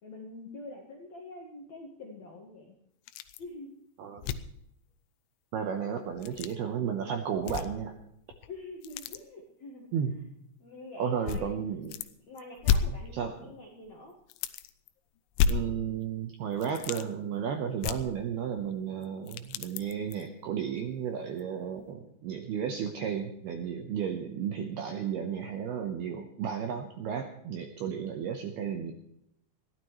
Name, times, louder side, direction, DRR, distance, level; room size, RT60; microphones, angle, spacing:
voice 1, 0.0-2.7 3.4-3.8 8.5-9.9 10.6-11.6 12.3-14.2, left 2 dB, 70° left, 0 dB, 1.7 m, -45 dB
sound 1, 3.1-3.5 3.8-3.9 4.2-4.6 6.1-6.5 7.4-8.0 8.3-9.2 10.1-10.2 11.3-12.1 12.4-13.5 13.9-14.0 14.3-14.9 15.3-16.2 16.5-17.1 17.8-18.7 19.0-20.3 20.8-20.9 21.4-21.5, left 8 dB, 85° left, 3.4 m, -32 dB
voice 2, 5.5-7.9 9.9-10.1 11.0-12.0 13.1-13.3 15.5-28.9, right 8 dB, 75° right, 4 dB, 2.3 m, -33 dB
21.0 x 15.0 x 3.2 m, 0.77 s
omnidirectional pair, 5.9 m